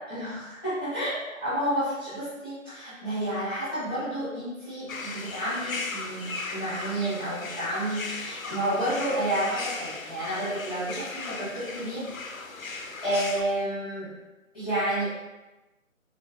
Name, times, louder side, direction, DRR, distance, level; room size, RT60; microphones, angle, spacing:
voice 1, 0.1-1.1 1.4-12.1 12.5-14.1 14.5-15.1, right 1 dB, ahead, -18 dB, 1.2 m, -30 dB
sound 1, 4.9-13.4, left 3 dB, 75° left, 0.6 m, -37 dB
4.2 x 3.1 x 2.5 m, 1.1 s
figure-of-eight pair, 160°, 41 cm